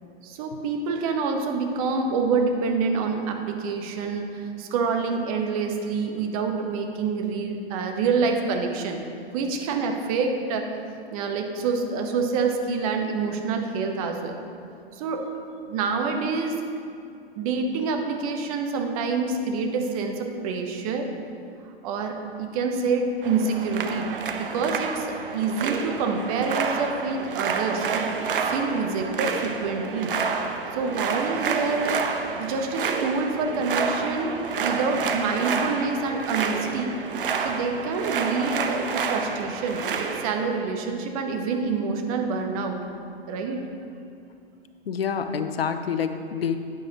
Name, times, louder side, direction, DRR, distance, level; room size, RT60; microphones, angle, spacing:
voice 1, 0.2-9.0 9.3-10.8 11.1-14.4 14.9-15.2 15.6-16.5 17.4-21.1 21.8-24.1 24.4-28.1 28.4-30.1 30.7-31.9 32.4-36.9 37.4-39.8 40.2-42.8 43.3-43.6, right 4 dB, 35° right, 4 dB, 1.0 m, -27 dB
sound 1, 23.2-40.3, right 5 dB, 60° right, 0.8 m, -29 dB
voice 2, 44.9-46.6, left 7 dB, 70° left, 9 dB, 0.7 m, -27 dB
11.0 x 9.1 x 2.9 m, 2.5 s
figure-of-eight pair, 110°, 31 cm